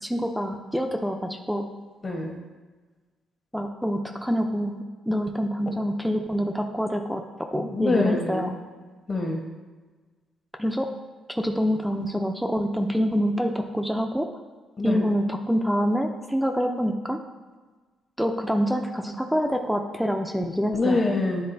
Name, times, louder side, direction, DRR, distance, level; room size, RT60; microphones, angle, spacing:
voice 1, 0.0-1.7 3.5-8.6 10.6-10.9 11.3-14.3 14.8-17.2 18.2-21.0, equal, ahead, 4 dB, 0.5 m, -26 dB
voice 2, 2.0-2.4 7.6-8.5 9.1-9.5 14.8-15.1 20.7-21.5, left 2 dB, 35° left, 2 dB, 1.1 m, -25 dB
9.6 x 3.6 x 2.7 m, 1.4 s
cardioid pair, 90°, 0 cm